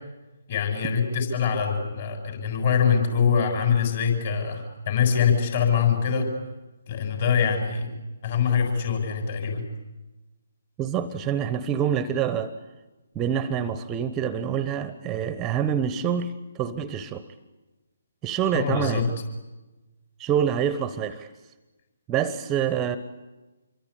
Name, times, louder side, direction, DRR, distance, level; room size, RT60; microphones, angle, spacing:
voice 1, 0.5-6.3 6.9-7.9 8.2-9.6 18.5-19.1, left 6 dB, 45° left, 4 dB, 7.3 m, -24 dB
voice 2, 10.8-12.5 13.1-16.3 16.6-17.2 18.2-19.1 20.2-21.3 22.1-23.0, right 8 dB, 15° right, 13 dB, 1.0 m, -26 dB
27.0 x 23.5 x 8.5 m, 1.1 s
figure-of-eight pair, 140°, 0 cm